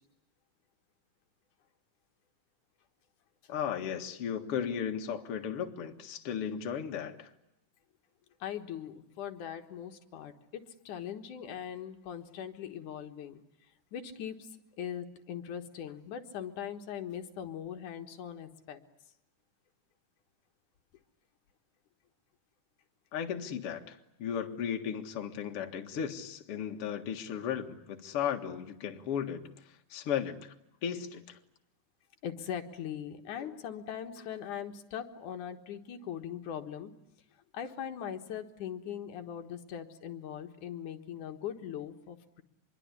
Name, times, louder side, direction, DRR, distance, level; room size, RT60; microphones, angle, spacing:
voice 1, 3.5-7.3 23.1-30.5 30.8-31.4, left 8 dB, 50° left, 2.3 m, -35 dB
voice 2, 8.4-13.4 13.9-14.5 14.8-18.8 32.2-36.9 37.5-42.4, left 9 dB, 65° left, 2.8 m, -40 dB
25.5 x 22.5 x 9.7 m
omnidirectional pair, 4.0 m